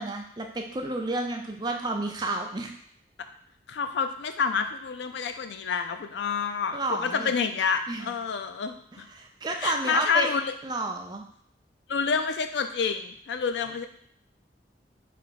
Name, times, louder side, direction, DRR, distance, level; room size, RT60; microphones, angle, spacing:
voice 1, 0.0-2.7 6.7-7.3 7.9-8.1 9.1-10.3 10.6-11.2, right 2 dB, 25° right, 3 dB, 0.4 m, -31 dB
voice 2, 3.7-9.1 9.6-10.5 11.9-13.9, left 6 dB, 75° left, 8 dB, 0.4 m, -28 dB
3.4 x 2.7 x 4.0 m, 0.67 s
head